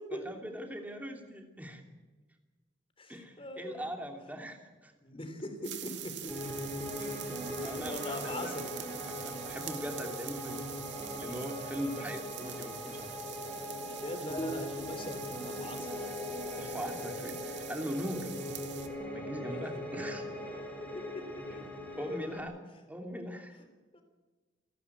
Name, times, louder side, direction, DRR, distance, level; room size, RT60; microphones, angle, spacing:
voice 1, 0.1-1.8 3.1-4.9 7.0-8.5 9.0-10.9 11.2-13.2 16.6-18.3 19.1-20.3 21.5-21.6 22.0-22.6 22.9-23.6, equal, 10° right, 4 dB, 2.8 m, -41 dB
voice 2, 3.0-4.0 5.0-6.5 7.5-8.6 11.8-12.1 13.8-16.0 16.6-16.7 19.5-19.6 23.9-24.0, left 1 dB, 30° left, 7 dB, 3.3 m, -41 dB
sound 1, 5.6-18.9, right 12 dB, 70° right, 2.4 m, -45 dB
Piano, 6.3-22.4, left 1 dB, 5° left, 5.9 m, -40 dB
29.0 x 11.5 x 8.6 m, 1.3 s
head